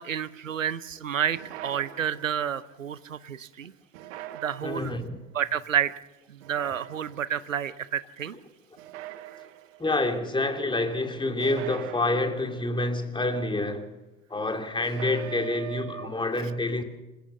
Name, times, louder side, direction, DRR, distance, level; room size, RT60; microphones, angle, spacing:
voice 1, 0.0-3.7 4.4-4.9 5.3-5.9 6.5-8.3, right 9 dB, 85° right, 0.7 m, -29 dB
sound 1, 1.3-2.6 3.9-5.1 6.4-7.4 8.8-9.9 11.4-12.7 14.8-16.1, right 14 dB, 60° right, 1.3 m, -42 dB
voice 2, 4.6-5.2 9.8-13.9 14.3-16.8, left 2 dB, 15° left, 2.8 m, -27 dB
26.5 x 15.0 x 7.0 m
figure-of-eight pair, 70°, 38 cm